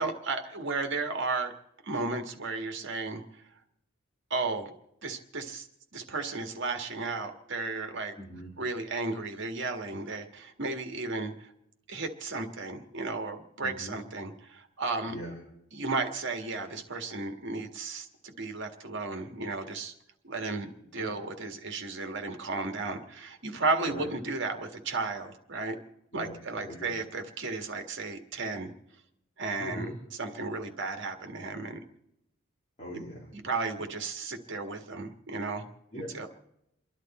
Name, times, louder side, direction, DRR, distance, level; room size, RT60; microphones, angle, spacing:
voice 1, 0.0-1.5 1.8-3.4 4.3-4.7 5.0-5.7 5.9-8.1 8.6-11.5 11.9-15.1 15.7-19.9 20.2-25.8 26.1-28.7 29.4-29.9 30.2-31.8 32.9-33.0 33.3-35.7 36.1-36.3, right 3 dB, 65° right, 5 dB, 1.8 m, -34 dB
voice 2, 8.2-8.5 13.6-14.0 15.1-15.4 21.0-21.2 23.8-24.1 26.1-27.0 29.6-30.0 32.8-33.3 35.9-36.2, equal, 35° left, -4 dB, 3.3 m, -40 dB
29.0 x 11.5 x 4.3 m, 0.83 s
head